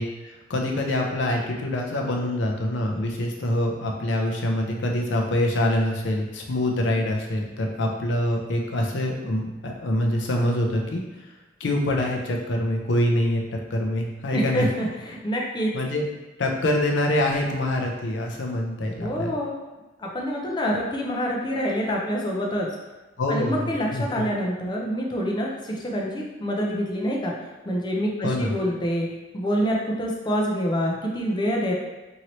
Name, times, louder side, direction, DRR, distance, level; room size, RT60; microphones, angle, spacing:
voice 1, 0.0-11.0 11.6-13.4 13.7-14.7 15.7-16.0 16.4-19.3 23.2-24.3 28.2-28.5, left 1 dB, 75° left, 1 dB, 0.5 m, -25 dB
voice 2, 14.3-15.7 19.0-19.5 20.0-22.7 23.3-27.3 27.7-29.1 29.3-31.7, equal, 25° left, -2 dB, 0.5 m, -26 dB
2.9 x 2.7 x 3.0 m, 1.2 s
head